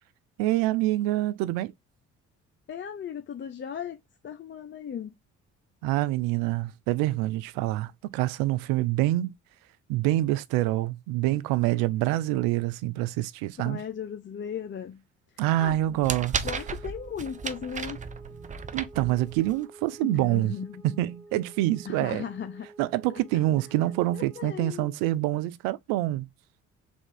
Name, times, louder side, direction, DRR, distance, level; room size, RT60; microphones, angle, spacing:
voice 1, 0.4-1.7 5.8-9.4 9.9-13.8 15.4-16.5 18.7-20.5 20.8-22.2 22.8-26.3, right 16 dB, 70° right, 0.5 m, -26 dB
voice 2, 2.7-4.0 4.2-5.1 13.6-15.0 15.6-16.0 16.4-18.0 20.0-21.0 21.8-22.7 24.1-24.9, left 8 dB, 35° left, 0.6 m, -37 dB
sound 1, 15.7-19.6, right 5 dB, 20° right, 0.5 m, -35 dB
sound 2, 16.4-24.8, right 2 dB, 50° right, 1.2 m, -50 dB
3.5 x 2.4 x 3.9 m
hypercardioid pair, 55°, 35 cm